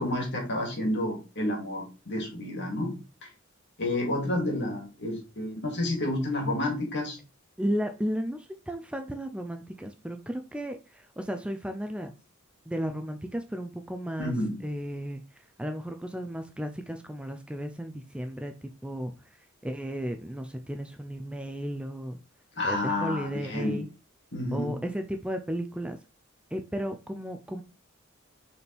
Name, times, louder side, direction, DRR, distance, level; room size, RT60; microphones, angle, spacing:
voice 1, 0.0-3.0 3.8-7.2 14.2-14.6 22.6-23.8 24.3-24.8, left 1 dB, 60° left, 0 dB, 2.5 m, -30 dB
voice 2, 7.6-12.1 12.7-14.3 14.6-15.2 15.6-19.1 19.6-22.2 22.6-23.9 24.5-26.0 26.5-27.6, equal, 5° right, 6 dB, 0.5 m, -34 dB
6.6 x 4.3 x 3.5 m, 0.31 s
head